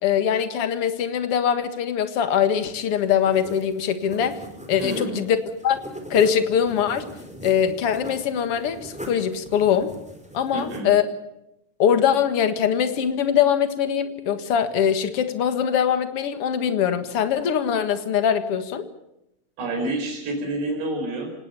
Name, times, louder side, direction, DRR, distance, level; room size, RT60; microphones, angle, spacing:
voice 1, 0.0-4.4 4.7-5.4 5.6-5.8 6.1-7.0 7.4-9.9 10.3-11.0 11.8-18.9, left 8 dB, 50° left, 9 dB, 1.8 m, -22 dB
sound 1, 2.8-10.8, equal, ahead, 3.6 m, -39 dB
voice 2, 4.8-5.2 10.5-10.9 19.6-21.3, right 2 dB, 85° right, 3 dB, 6.8 m, -28 dB
26.5 x 19.0 x 6.9 m, 0.86 s
omnidirectional pair, 4.7 m